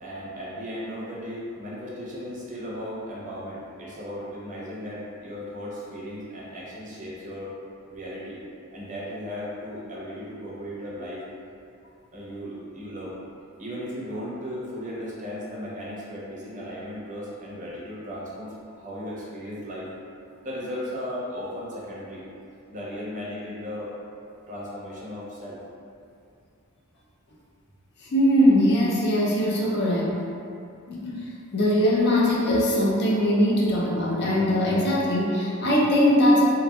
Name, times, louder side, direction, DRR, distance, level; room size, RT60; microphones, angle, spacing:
voice 1, 0.0-7.5 7.9-8.4 8.7-11.2 12.1-13.2 13.6-19.9 20.4-22.2 22.7-24.0 24.5-25.6, equal, 35° right, -7 dB, 0.6 m, -36 dB
voice 2, 28.0-30.2 30.9-36.4, equal, 50° left, -5 dB, 0.5 m, -21 dB
3.0 x 2.4 x 2.2 m, 2.5 s
head